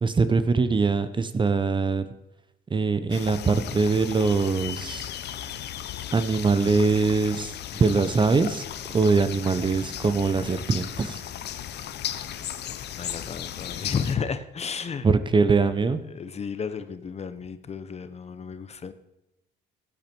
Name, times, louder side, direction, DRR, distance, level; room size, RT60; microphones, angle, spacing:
voice 1, 0.0-2.0 2.7-5.1 6.1-7.5 7.8-8.6 8.9-11.2 15.0-16.0, right 4 dB, 25° right, 12 dB, 0.8 m, -22 dB
sound 1, 3.1-14.2, left 10 dB, 65° left, 0.9 m, -36 dB
voice 2, 13.0-15.1 16.1-18.9, left 6 dB, 35° left, 11 dB, 0.9 m, -32 dB
15.5 x 8.8 x 4.6 m, 0.91 s
cardioid pair, 90°, 19 cm